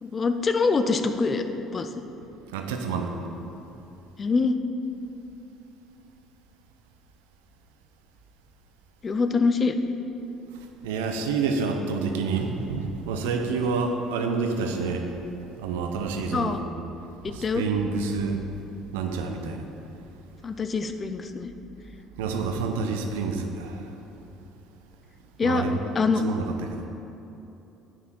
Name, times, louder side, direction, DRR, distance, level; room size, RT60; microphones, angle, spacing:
voice 1, 0.0-1.4 1.7-1.9 4.2-4.6 9.0-9.8 16.3-16.6 17.2-17.6 20.4-21.5 25.4-25.7 25.9-26.2, left 4 dB, 35° left, 8 dB, 0.6 m, -24 dB
voice 2, 2.5-3.1 10.8-15.1 15.6-16.6 17.3-18.4 18.9-19.6 22.2-23.9 25.4-25.8 26.2-26.8, right 4 dB, 75° right, 5 dB, 0.7 m, -28 dB
9.3 x 5.8 x 4.5 m, 3.0 s
hypercardioid pair, 60°, 0 cm